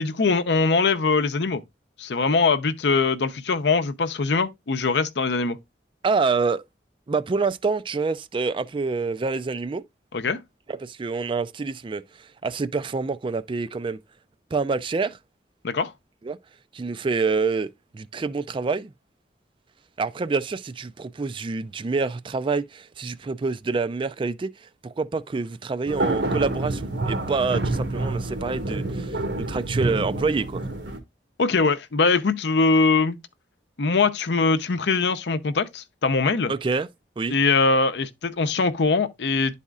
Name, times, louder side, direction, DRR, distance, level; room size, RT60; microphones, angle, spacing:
voice 1, 0.0-1.6 2.0-5.6 10.1-10.4 15.6-15.9 31.4-33.2 33.8-36.5 37.3-39.5, left 4 dB, 70° left, 0.6 m, -22 dB
voice 2, 6.0-6.6 7.1-9.8 10.7-14.0 14.5-15.2 16.2-16.4 16.7-18.9 20.0-30.6 36.5-36.9 37.2-37.4, right 4 dB, 30° right, 0.3 m, -27 dB
sound 1, 25.9-31.0, right 2 dB, 80° right, 1.5 m, -27 dB
11.0 x 4.2 x 2.4 m
head